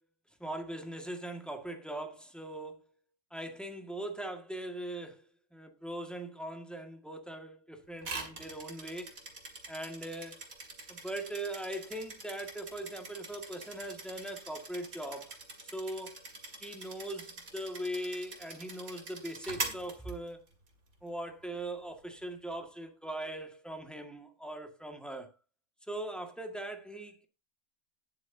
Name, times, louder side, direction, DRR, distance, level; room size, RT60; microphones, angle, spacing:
voice 1, 0.4-2.8 3.3-5.2 5.5-9.2 9.7-10.4 10.9-15.4 15.7-16.2 16.6-20.4 21.0-25.3 25.9-27.3, right 1 dB, ahead, 1.7 m, -40 dB
sound 1, 8.0-20.7, right 3 dB, 80° right, 2.8 m, -44 dB
19.5 x 7.8 x 2.7 m
omnidirectional pair, 1.5 m